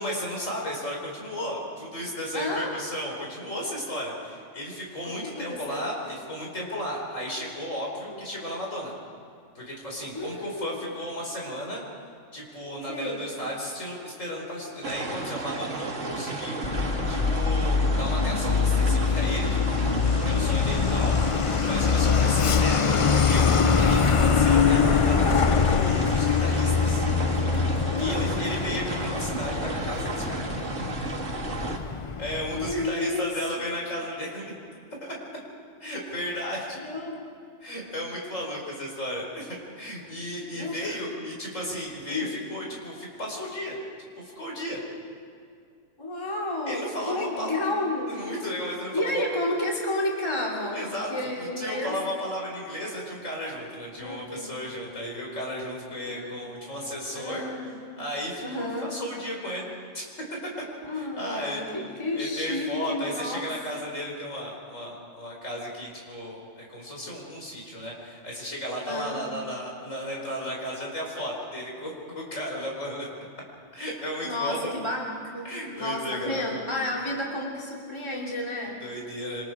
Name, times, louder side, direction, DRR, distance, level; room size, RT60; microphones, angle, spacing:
voice 1, 0.0-8.9 9.5-11.8 12.3-16.7 17.1-19.8 20.2-21.2 21.6-27.0 28.0-30.5 32.2-34.5 35.0-35.2 35.8-36.8 37.6-43.8 44.2-44.8 46.7-47.5 48.1-49.2 50.7-57.5 58.0-59.6 59.9-60.4 60.9-61.6 62.1-73.1 73.7-74.6 75.4-76.4 78.8-79.5, equal, 75° left, -2 dB, 5.0 m, -34 dB
voice 2, 2.3-2.8 5.0-5.8 8.0-8.2 10.1-10.8 12.9-13.3 22.5-22.8 27.9-28.3 31.7-32.2 32.5-33.3 36.8-37.3 40.5-41.0 42.1-42.4 46.0-48.2 48.9-52.0 53.9-54.5 56.0-56.5 57.1-57.8 58.4-58.9 60.8-63.5 68.9-69.2 74.2-78.8, left 1 dB, 20° left, -3 dB, 2.9 m, -31 dB
sound 1, 14.8-31.8, right 3 dB, 70° right, 2.0 m, -33 dB
Truck, 16.6-32.9, left 6 dB, 40° left, 0.4 m, -24 dB
26.5 x 25.5 x 5.0 m, 2.3 s
omnidirectional pair, 1.3 m